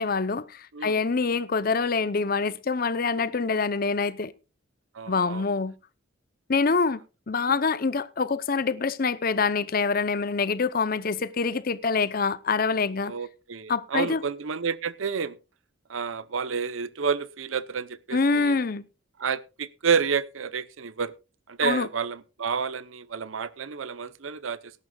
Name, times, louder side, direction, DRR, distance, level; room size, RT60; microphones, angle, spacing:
voice 1, 0.0-4.3 5.1-5.7 6.5-7.0 7.3-13.1 13.7-14.2 18.1-18.8 21.6-21.9, left 4 dB, 45° left, 0.6 m, -25 dB
voice 2, 4.9-5.4 13.0-15.4 15.9-18.6 19.2-21.1 21.5-24.7, right 6 dB, 85° right, 0.7 m, -30 dB
19.0 x 11.0 x 2.3 m
head